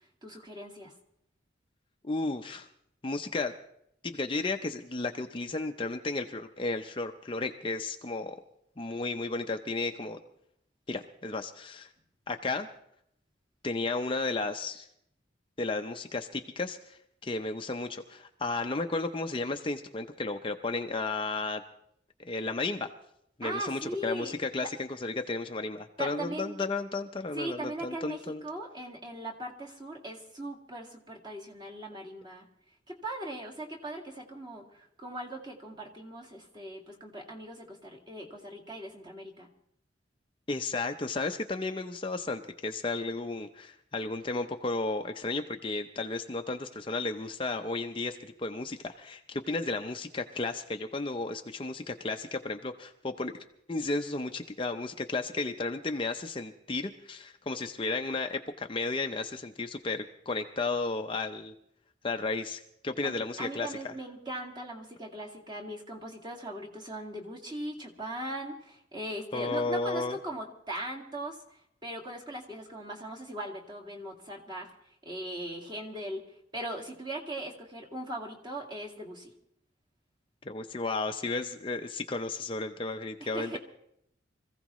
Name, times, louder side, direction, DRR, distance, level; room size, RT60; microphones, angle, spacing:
voice 1, 0.2-0.9 23.4-24.3 24.6-24.7 26.0-26.6 27.3-32.5 32.9-39.5 63.0-71.4 71.8-74.7 75.0-76.2 76.5-79.3 83.2-83.6, right 1 dB, 25° right, 0 dB, 2.0 m, -39 dB
voice 2, 2.0-2.7 3.0-3.5 4.0-8.4 8.8-10.2 10.9-11.9 12.3-12.7 13.6-14.9 15.6-21.6 22.3-22.9 23.4-28.4 40.5-53.3 53.7-61.5 62.0-63.9 69.3-70.2 80.4-83.6, left 3 dB, 30° left, 5 dB, 0.6 m, -33 dB
25.5 x 15.5 x 3.1 m, 0.74 s
head